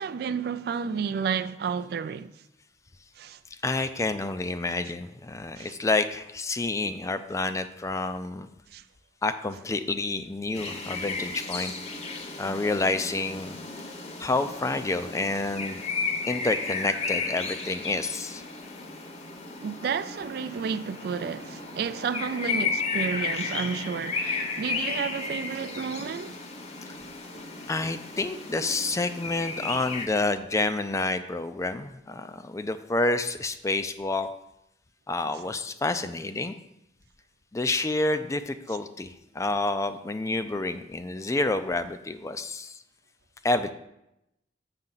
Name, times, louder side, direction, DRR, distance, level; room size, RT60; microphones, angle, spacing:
voice 1, 0.0-2.3 3.2-3.4 5.6-5.8 8.7-8.8 19.6-26.4, right 6 dB, 60° right, 0.3 m, -31 dB
voice 2, 3.6-8.5 9.2-11.7 12.4-13.6 14.2-15.8 16.3-18.4 27.7-34.3 35.1-36.5 37.5-42.8 43.4-43.7, left 2 dB, 15° left, 0.3 m, -28 dB
sound 1, 10.5-30.1, left 4 dB, 35° left, 0.8 m, -34 dB
7.3 x 6.5 x 3.9 m
head